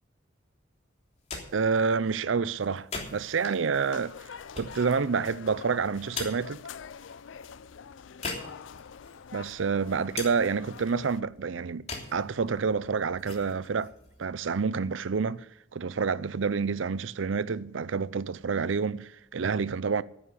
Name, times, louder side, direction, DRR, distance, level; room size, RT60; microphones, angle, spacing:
sound 1, 1.0-15.0, left 4 dB, 35° left, 3.2 m, -44 dB
voice 1, 1.5-4.3 4.6-6.6 9.3-11.9 12.1-13.9 14.2-15.5 15.7-20.0, right 5 dB, 85° right, 0.6 m, -28 dB
sound 2, 3.7-11.2, left 7 dB, 75° left, 0.5 m, -46 dB
10.0 x 10.0 x 8.2 m
head